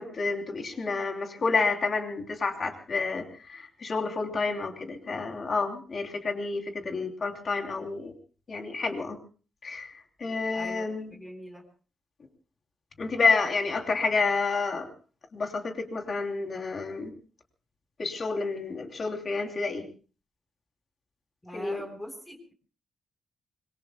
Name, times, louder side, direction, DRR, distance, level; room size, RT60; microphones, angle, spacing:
voice 1, 0.0-3.2 3.5-8.1 8.5-9.2 9.6-9.9 10.2-11.1 13.0-14.9 15.3-17.1 18.0-19.9 21.5-21.8, left 4 dB, 40° left, 3 dB, 3.0 m, -29 dB
voice 2, 10.5-11.6 21.4-22.5, equal, 10° left, 2 dB, 4.1 m, -42 dB
26.0 x 23.5 x 2.2 m, 0.38 s
cardioid pair, 130°, 0 cm